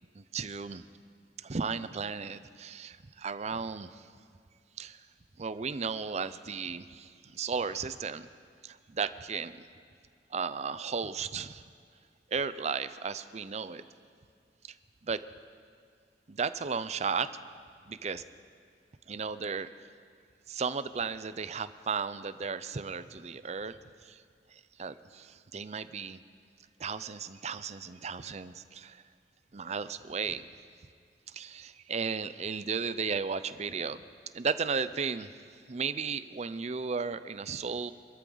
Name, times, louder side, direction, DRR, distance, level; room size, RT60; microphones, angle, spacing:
voice 1, 0.2-0.8 1.4-4.0 4.8-5.0 5.4-8.3 8.6-9.6 10.3-11.6 12.3-13.8 15.0-15.2 16.3-17.3 17.9-18.2 19.1-19.7 20.5-23.8 24.0-24.2 24.5-26.2 26.8-29.0 29.5-30.5 31.3-34.0 34.3-35.3 35.7-37.9, right 5 dB, 40° right, 13 dB, 0.5 m, -35 dB
26.0 x 13.0 x 4.0 m, 2.1 s
head